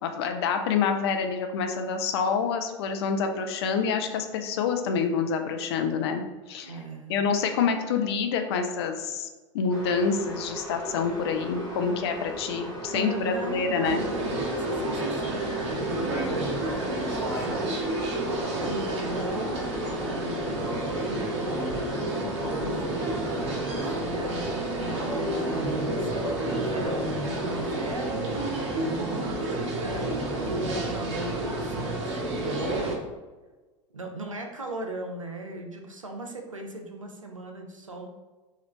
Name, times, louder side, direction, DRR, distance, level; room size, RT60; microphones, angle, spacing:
voice 1, 0.0-6.7 7.1-9.3 9.5-14.0, left 5 dB, 55° left, 6 dB, 0.4 m, -27 dB
voice 2, 6.6-7.1 12.9-15.5 15.7-18.1 18.5-28.5 29.0-32.6 33.9-38.1, right 2 dB, 90° right, 2 dB, 0.4 m, -38 dB
sound 1, 9.7-28.1, right 1 dB, 25° left, 0.7 m, -38 dB
sound 2, 13.8-32.9, right 1 dB, 60° right, 0.8 m, -30 dB
3.0 x 2.4 x 3.2 m, 1.2 s
figure-of-eight pair, 85°, 16 cm